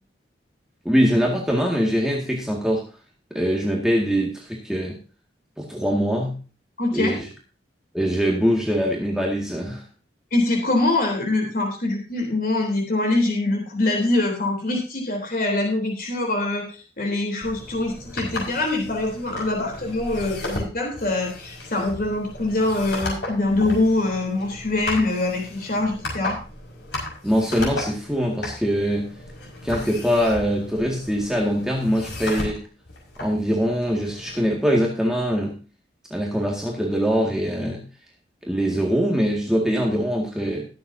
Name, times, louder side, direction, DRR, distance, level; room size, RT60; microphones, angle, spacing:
voice 1, 0.9-2.8 3.3-5.0 5.6-6.3 6.9-7.3 7.9-9.8 27.2-29.1 29.6-32.6 33.2-35.6 36.1-37.8 38.5-40.7, equal, 5° right, -2 dB, 2.0 m, -23 dB
voice 2, 6.8-7.2 10.3-26.4, left 2 dB, 55° left, 1 dB, 3.5 m, -24 dB
sound 1, 17.4-34.4, left 1 dB, 90° left, 5.7 m, -35 dB
20.5 x 7.8 x 2.8 m, 0.35 s
head